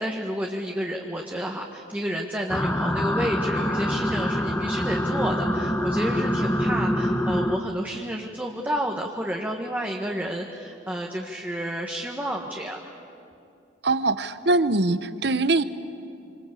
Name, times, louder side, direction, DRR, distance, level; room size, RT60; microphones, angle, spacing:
voice 1, 0.0-12.9, equal, 10° right, 0 dB, 1.5 m, -30 dB
sound 1, 2.5-7.6, equal, 10° left, 1.3 m, -25 dB
voice 2, 13.8-15.6, right 2 dB, 65° right, 13 dB, 1.0 m, -22 dB
27.0 x 26.0 x 8.5 m, 2.6 s
head